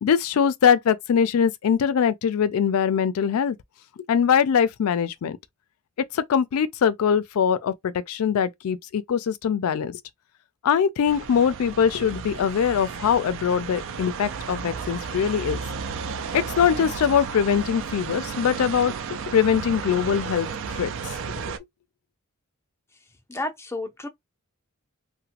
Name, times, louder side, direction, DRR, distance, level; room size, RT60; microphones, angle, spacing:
voice 1, 0.0-3.6 4.1-5.4 6.1-10.0 10.6-15.6 16.3-18.9 19.3-20.5 20.7-20.9, left 7 dB, 80° left, 0.4 m, -22 dB
sound 1, 11.1-21.6, right 6 dB, 60° right, 0.4 m, -33 dB
voice 2, 23.3-24.1, left 2 dB, 10° left, 0.5 m, -31 dB
2.9 x 2.1 x 2.8 m
head